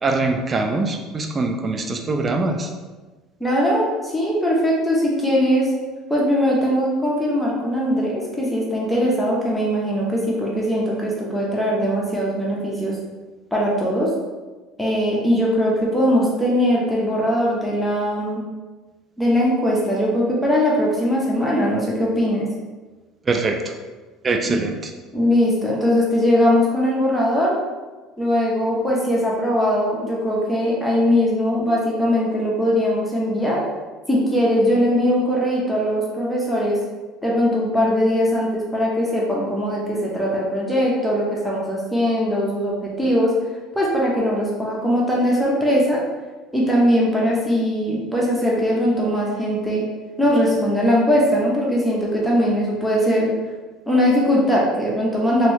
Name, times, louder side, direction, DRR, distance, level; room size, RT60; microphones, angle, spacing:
voice 1, 0.0-2.7 23.3-23.7 24.2-24.9, right 3 dB, 30° right, 5 dB, 0.4 m, -23 dB
voice 2, 3.4-5.7 6.1-13.0 13.5-14.1 14.8-18.4 19.2-22.5 24.4-24.6 25.1-27.6 28.2-33.7 34.1-36.8 37.2-43.3 43.7-46.0 46.5-49.8 50.2-53.3 53.9-55.5, equal, 5° left, -5 dB, 0.8 m, -20 dB
2.9 x 2.7 x 3.0 m, 1.3 s
supercardioid pair, 100°, 0 cm